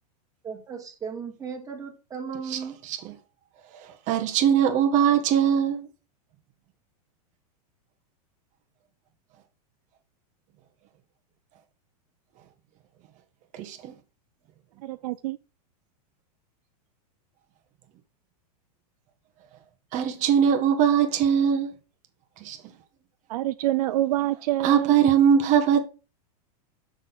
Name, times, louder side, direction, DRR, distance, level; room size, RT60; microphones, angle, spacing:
voice 1, 0.4-2.8, right 6 dB, 15° right, 2.2 m, -36 dB
voice 2, 3.7-5.9 13.5-13.9 19.9-21.7 22.4-22.6 24.6-25.8, right 8 dB, 35° right, 1.4 m, -21 dB
voice 3, 14.8-15.4 23.3-24.9, right 15 dB, 70° right, 0.5 m, -26 dB
6.4 x 6.1 x 4.0 m
supercardioid pair, 140°, 20 cm